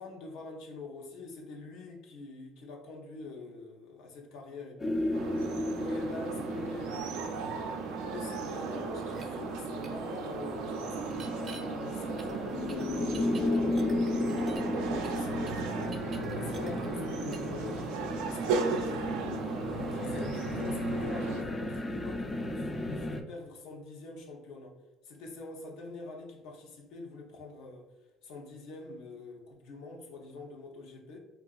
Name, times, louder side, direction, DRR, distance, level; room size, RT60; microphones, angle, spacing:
voice 1, 0.0-4.9 5.8-7.2 8.1-14.4 14.9-15.8 16.3-17.9 18.2-24.8 25.0-27.8 28.2-31.2, left 3 dB, 80° left, 1 dB, 0.7 m, -45 dB
sound 1, 4.8-23.2, left 2 dB, 25° left, 0.3 m, -35 dB
sound 2, 5.1-21.4, right 4 dB, 90° right, 0.4 m, -36 dB
sound 3, 9.1-9.2 9.8-9.9 11.1-11.6 12.2-14.8 15.0-17.0 17.3-17.5, right 3 dB, 35° right, 0.5 m, -47 dB
3.8 x 2.4 x 2.4 m, 1.1 s
cardioid pair, 105°, 0 cm